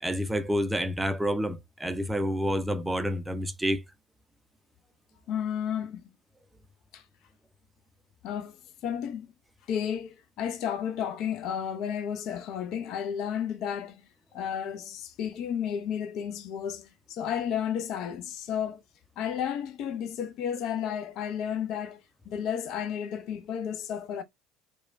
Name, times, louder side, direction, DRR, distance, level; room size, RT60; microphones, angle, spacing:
voice 1, 0.0-3.8, equal, 10° right, 0.5 m, -28 dB
voice 2, 5.3-6.1 6.9-7.0 8.2-9.3 9.7-14.1 14.3-18.8 19.2-24.2, left 8 dB, 50° left, 0.4 m, -32 dB
2.9 x 2.2 x 2.5 m
figure-of-eight pair, 65°, 0 cm